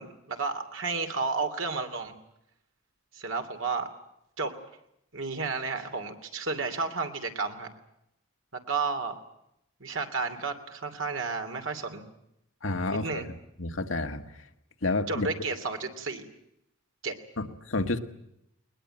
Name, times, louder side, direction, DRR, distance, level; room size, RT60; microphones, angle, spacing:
voice 1, 0.0-2.1 3.1-3.9 4.4-4.5 5.1-7.7 8.7-9.2 9.8-12.0 12.9-13.3 15.1-16.3 17.0-17.1, right 4 dB, 65° right, 6 dB, 2.8 m, -32 dB
voice 2, 12.6-13.2 13.6-14.2 14.8-15.3 17.4-18.0, left 2 dB, 65° left, 6 dB, 1.7 m, -29 dB
21.0 x 21.0 x 9.0 m, 0.79 s
head